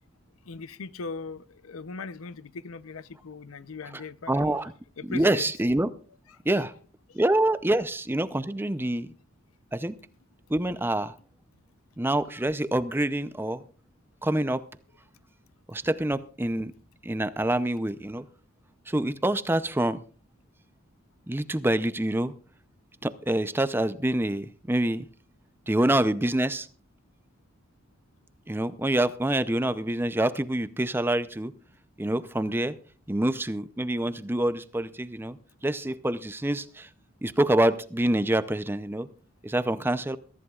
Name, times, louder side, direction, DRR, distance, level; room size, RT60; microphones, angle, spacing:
voice 1, 0.4-4.6 5.0-5.5 6.3-6.6 7.1-7.2 8.9-9.0 12.3-12.5, left 4 dB, 80° left, 0.7 m, -40 dB
voice 2, 4.3-4.7 5.1-5.9 6.5-6.7 7.1-9.1 9.7-10.0 10.5-11.1 12.0-13.6 14.2-14.6 15.7-16.7 17.0-18.2 18.9-20.0 21.3-22.3 23.0-25.1 25.7-26.7 28.5-31.5 32.0-32.8 33.1-35.4 35.6-36.9 37.2-39.1 39.4-40.2, right 1 dB, 10° right, 0.5 m, -26 dB
22.5 x 14.0 x 2.4 m
head